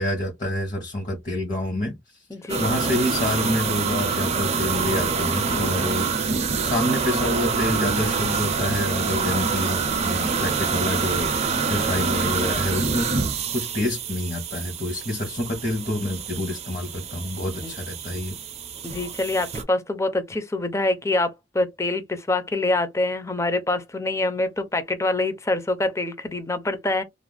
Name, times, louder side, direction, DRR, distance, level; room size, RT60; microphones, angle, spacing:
voice 1, 0.0-2.0 2.6-6.3 6.6-13.1 13.5-18.4, left 1 dB, 50° left, 0.9 m, -27 dB
voice 2, 2.3-2.7 17.6-17.7 18.8-27.0, left 2 dB, 15° left, 0.5 m, -25 dB
sound 1, 2.5-19.6, right 5 dB, 35° right, 0.5 m, -26 dB
sound 2, 7.1-13.2, left 1 dB, 90° left, 0.5 m, -43 dB
2.5 x 2.1 x 3.3 m
head